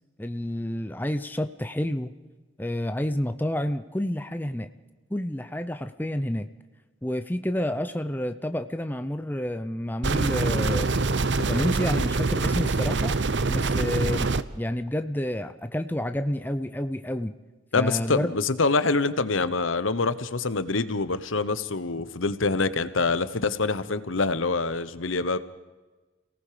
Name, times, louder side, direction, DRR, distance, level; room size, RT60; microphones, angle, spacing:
voice 1, 0.2-2.1 2.6-4.7 5.1-6.5 7.0-10.9 11.4-13.1 13.5-14.3 14.5-17.3 17.8-18.3, left 1 dB, 10° left, 9 dB, 0.7 m, -29 dB
sound 1, 10.0-14.4, right 3 dB, 65° right, 0.8 m, -25 dB
voice 2, 17.7-25.4, left 3 dB, 85° left, 13 dB, 1.1 m, -25 dB
29.0 x 18.5 x 5.1 m, 1.2 s
head